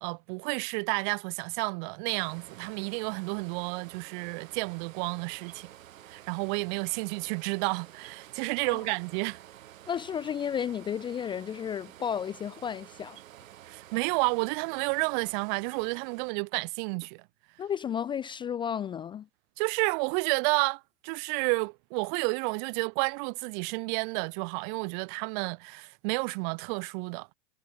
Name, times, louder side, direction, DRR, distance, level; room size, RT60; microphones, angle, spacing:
voice 1, 0.0-5.7 6.1-9.4 13.7-17.2 19.6-27.3, right 35 dB, 40° right, 0.7 m, -31 dB
sound 1, 2.1-16.3, right 12 dB, 80° right, 7.7 m, -51 dB
voice 2, 9.9-13.2 17.6-19.3, left 8 dB, 10° left, 0.5 m, -33 dB
supercardioid pair, 145°, 39 cm